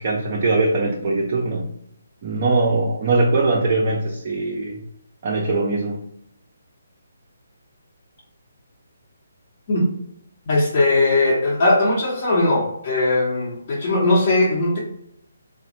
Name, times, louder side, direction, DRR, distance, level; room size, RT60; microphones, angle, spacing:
voice 1, 0.0-1.7 2.2-4.8 5.2-6.0, right 3 dB, 35° right, -2 dB, 0.5 m, -21 dB
voice 2, 10.5-14.8, left 2 dB, 40° left, -6 dB, 0.9 m, -19 dB
3.8 x 2.1 x 2.8 m, 0.73 s
figure-of-eight pair, 140°, 0 cm